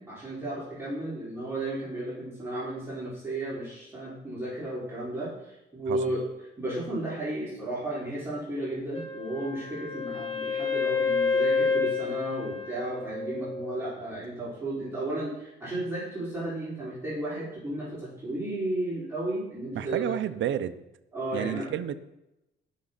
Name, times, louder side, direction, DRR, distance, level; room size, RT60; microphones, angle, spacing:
voice 1, 0.0-6.2 6.6-20.1 21.1-21.7, right 1 dB, 10° right, -9 dB, 5.0 m, -34 dB
Wind instrument woodwind instrument, 8.9-13.8, left 4 dB, 30° left, 5.0 m, -29 dB
voice 2, 19.7-20.8 21.3-21.9, right 10 dB, 70° right, 11 dB, 0.8 m, -30 dB
19.5 x 6.4 x 4.1 m, 0.90 s
cardioid pair, 90°, 20 cm